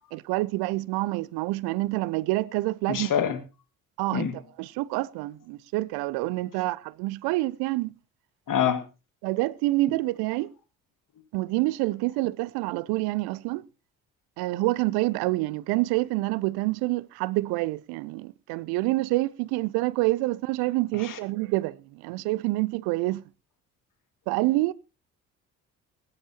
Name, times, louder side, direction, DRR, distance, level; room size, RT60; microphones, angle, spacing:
voice 1, 0.1-3.1 4.0-4.3 4.6-7.9 9.2-10.5 11.3-13.6 14.4-21.7 22.0-23.2 24.3-24.7, right 20 dB, 65° right, 0.6 m, -27 dB
voice 2, 2.9-3.4 4.1-4.3 8.5-8.8 20.9-21.2, left 9 dB, 50° left, 2.2 m, -26 dB
21.5 x 10.5 x 3.0 m
figure-of-eight pair, 45°, 42 cm